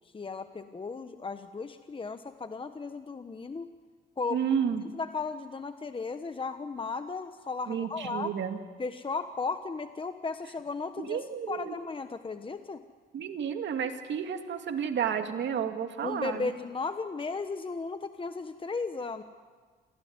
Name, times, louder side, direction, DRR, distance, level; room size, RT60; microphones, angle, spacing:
voice 1, 0.1-3.7 4.2-4.4 4.9-8.3 8.8-12.8 16.0-19.2, left 4 dB, 25° left, 9 dB, 1.1 m, -35 dB
voice 2, 4.3-4.8 7.7-8.6 11.0-11.7 13.1-16.5, right 8 dB, 65° right, 5 dB, 2.4 m, -31 dB
27.0 x 17.0 x 9.6 m, 1.5 s
cardioid pair, 90°, 20 cm